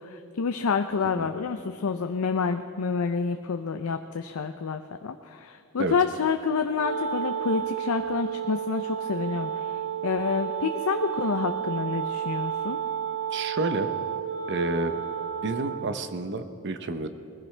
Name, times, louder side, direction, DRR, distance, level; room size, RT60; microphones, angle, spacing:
voice 1, 0.1-9.5 10.0-12.8, left 5 dB, 90° left, 7 dB, 0.5 m, -28 dB
Wind instrument woodwind instrument, 6.8-16.0, right 8 dB, 75° right, 1.1 m, -31 dB
voice 2, 13.3-13.9 14.5-14.9 15.4-17.1, right 2 dB, 55° right, 9 dB, 0.8 m, -29 dB
21.0 x 15.0 x 3.3 m, 2.7 s
head